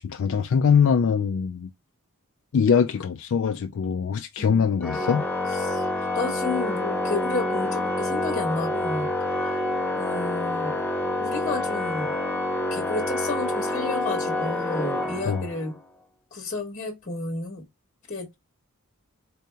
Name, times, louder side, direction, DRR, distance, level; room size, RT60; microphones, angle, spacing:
voice 1, 0.0-1.7 2.5-5.2 15.3-15.5, left 6 dB, 60° left, 0.3 m, -22 dB
voice 2, 4.4-4.8 5.6-5.8 6.1-9.6 10.0-10.8 11.2-12.1 12.7-15.7 16.3-17.6 18.1-18.3, left 3 dB, 35° left, 1.2 m, -32 dB
Organ, 4.8-15.8, left 1 dB, 5° left, 0.7 m, -27 dB
3.9 x 2.8 x 3.3 m
head